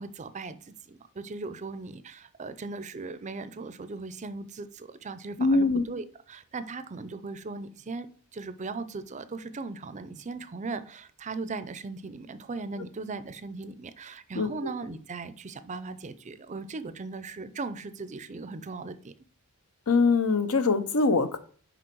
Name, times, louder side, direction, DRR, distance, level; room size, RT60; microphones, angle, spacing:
voice 1, 0.0-8.1 8.3-19.1, right 3 dB, 30° right, 0.5 m, -38 dB
voice 2, 5.4-5.8 14.3-14.6 19.9-21.4, left 3 dB, 75° left, 0.8 m, -23 dB
6.2 x 5.2 x 4.6 m
head